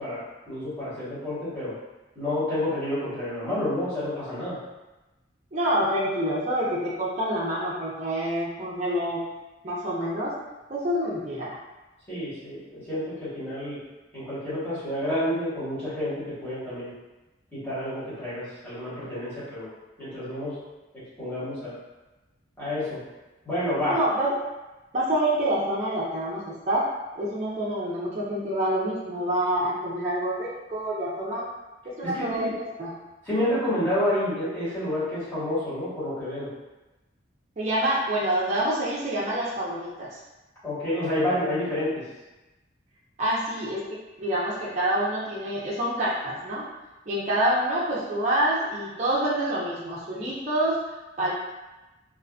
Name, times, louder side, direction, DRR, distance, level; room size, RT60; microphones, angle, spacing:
voice 1, 0.0-1.7 2.1-4.6 12.1-13.8 14.1-16.9 17.5-19.7 20.0-20.5 20.9-21.8 22.6-23.0 23.4-24.0 32.0-32.5 33.2-36.5 40.6-42.0, left 1 dB, 10° left, -14 dB, 1.2 m, -29 dB
voice 2, 5.5-9.2 9.6-10.3 10.7-11.6 23.8-24.3 24.9-26.9 27.2-31.4 31.8-32.9 37.6-40.2 43.2-43.8 44.2-46.6 47.1-50.8 51.2-51.3, right 1 dB, 35° right, -7 dB, 0.4 m, -27 dB
2.4 x 2.4 x 2.3 m, 1.1 s
head